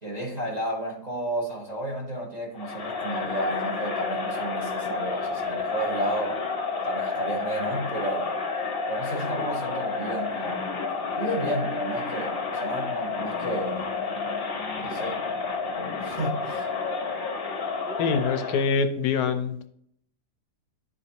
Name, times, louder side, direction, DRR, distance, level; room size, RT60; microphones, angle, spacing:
voice 1, 0.0-6.4 6.8-8.4 8.9-10.7 11.2-13.9 14.8-15.3 15.8-16.7, right 1 dB, 25° right, 1.5 m, -32 dB
Crowd, 2.6-18.8, left 4 dB, 40° left, 1.0 m, -30 dB
voice 2, 18.0-19.7, left 5 dB, 75° left, 1.2 m, -25 dB
12.0 x 4.2 x 2.9 m
omnidirectional pair, 1.8 m